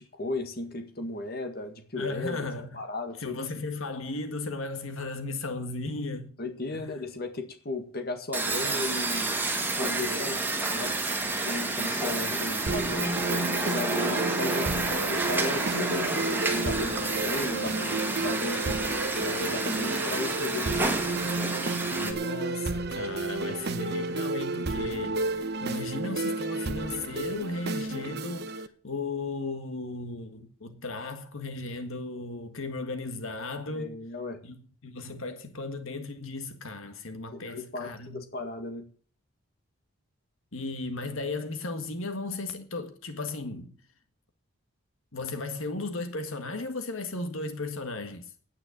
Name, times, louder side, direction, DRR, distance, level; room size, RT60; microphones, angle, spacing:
voice 1, 0.0-2.4 2.7-3.4 6.4-9.4 9.7-11.0 11.5-18.0 18.2-18.8 19.2-21.1 33.7-34.4 37.3-38.8, left 2 dB, 45° left, 1.9 m, -35 dB
voice 2, 1.9-2.8 3.2-6.3 6.7-6.9 21.9-33.9 34.4-38.2 40.5-43.8 45.1-48.3, left 3 dB, 70° left, 1.7 m, -36 dB
sound 1, 8.3-22.1, right 2 dB, 10° right, 2.2 m, -30 dB
sound 2, 12.7-28.7, right 2 dB, 50° right, 1.0 m, -32 dB
9.9 x 9.4 x 8.8 m
head